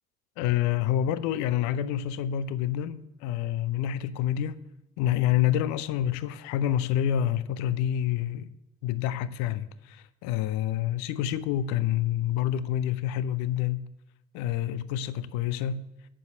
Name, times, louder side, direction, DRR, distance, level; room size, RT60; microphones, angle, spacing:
voice 1, 0.4-4.6 5.0-8.5 8.8-13.9 14.3-15.9, left 11 dB, 60° left, 0.6 m, -28 dB
9.2 x 7.6 x 7.6 m
figure-of-eight pair, 50°, 32 cm